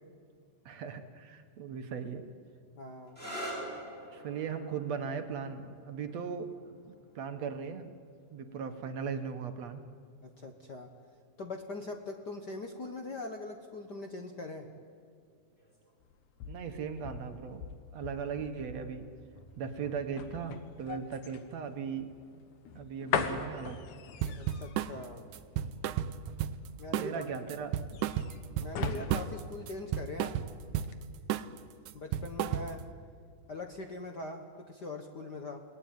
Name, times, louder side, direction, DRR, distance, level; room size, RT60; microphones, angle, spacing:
voice 1, 0.7-2.2 4.1-8.0 8.3-9.8 16.5-19.1 19.6-22.1 22.7-23.8 27.0-27.8, right 6 dB, 65° right, 7 dB, 2.4 m, -38 dB
voice 2, 2.8-3.2 10.2-10.9 11.4-14.7 24.4-25.2 26.8-27.2 28.6-30.4 31.9-32.9 33.5-35.6, left 2 dB, 45° left, 5 dB, 1.5 m, -42 dB
sound 1, 3.1-10.5 11.5-12.0 15.6-15.9, right 1 dB, 15° left, 6.4 m, -47 dB
sound 2, 16.0-30.4 30.7-31.0, left 7 dB, 75° left, 2.9 m, -41 dB
sound 3, 24.2-25.0 25.3-26.7 26.9-27.2 27.5-29.4 29.7-30.9 31.3-31.6 31.9-32.9, right 10 dB, 80° right, 2.3 m, -33 dB
30.0 x 19.5 x 9.3 m, 2.2 s
omnidirectional pair, 3.5 m